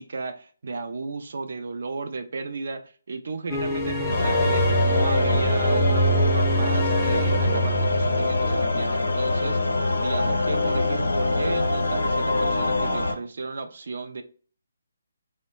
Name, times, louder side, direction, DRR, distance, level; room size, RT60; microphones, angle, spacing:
voice 1, 0.0-14.2, right 4 dB, 65° right, 0.3 m, -34 dB
sound 1, 3.5-8.7, right 1 dB, 5° left, 0.5 m, -24 dB
sound 2, 4.1-13.1, left 2 dB, 85° left, 0.6 m, -24 dB
2.6 x 2.0 x 3.0 m
figure-of-eight pair, 150°, 0 cm